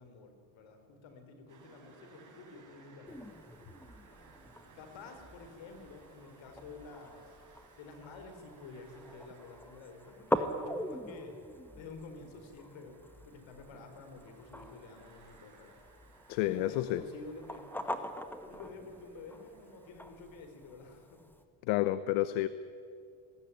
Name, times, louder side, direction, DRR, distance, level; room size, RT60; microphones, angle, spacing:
voice 1, 0.0-3.4 4.7-7.4 7.8-11.4 11.8-15.8 16.4-18.0 18.4-21.2, left 3 dB, 65° left, 6 dB, 4.1 m, -50 dB
sound 1, 1.5-21.1, right 4 dB, 40° right, 5.2 m, -62 dB
sound 2, 3.1-21.4, equal, 5° left, 1.8 m, -43 dB
voice 2, 16.3-17.0 21.7-22.5, left 15 dB, 85° left, 14 dB, 0.9 m, -30 dB
20.5 x 16.0 x 9.9 m, 2.4 s
supercardioid pair, 85°, 48 cm